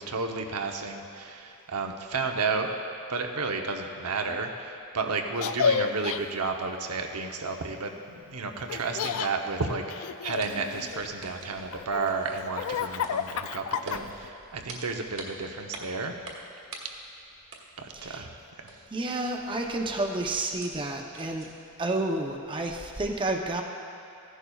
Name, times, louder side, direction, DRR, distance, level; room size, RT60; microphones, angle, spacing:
voice 1, 0.0-2.7 3.1-16.1 17.8-18.9, right 4 dB, 90° right, 3 dB, 0.8 m, -32 dB
Laughter, 5.4-6.2 8.7-9.3 9.9-11.2 11.7-14.3, left 6 dB, 65° left, 0.3 m, -30 dB
sound 1, 10.2-21.8, right 2 dB, 60° right, 1.4 m, -47 dB
voice 2, 17.9-18.3 18.9-21.5 21.8-23.6, right 2 dB, 20° right, 2 dB, 0.7 m, -30 dB
15.0 x 11.0 x 2.4 m, 2.8 s
head